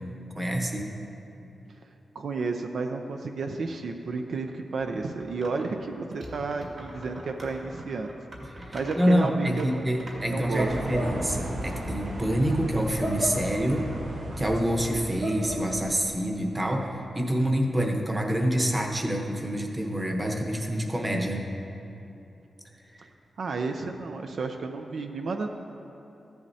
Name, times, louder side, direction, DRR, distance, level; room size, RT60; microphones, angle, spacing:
voice 1, 0.4-0.9 8.7-13.9 14.4-21.4, equal, 15° right, 2 dB, 1.0 m, -27 dB
voice 2, 2.1-8.1 8.7-9.9 10.3-10.7 23.4-25.5, right 4 dB, 65° right, 4 dB, 0.5 m, -32 dB
sound 1, 4.8-5.7 6.1-10.9, right 1 dB, 50° right, 1.9 m, -44 dB
sound 2, 10.6-16.1, right 1 dB, 85° right, 1.8 m, -33 dB
14.5 x 10.5 x 2.8 m, 2.9 s
wide cardioid pair, 140°, 0 cm